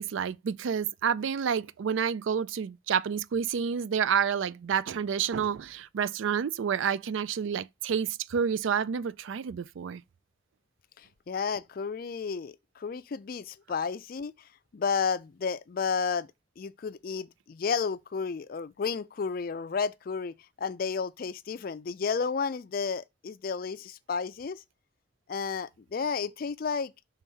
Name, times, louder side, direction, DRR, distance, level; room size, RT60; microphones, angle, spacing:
voice 1, 0.0-10.0, right 7 dB, 75° right, 0.4 m, -29 dB
voice 2, 11.0-14.3 14.7-16.3 16.6-24.6 25.3-26.9, left 5 dB, 45° left, 0.4 m, -32 dB
5.6 x 3.6 x 5.4 m
head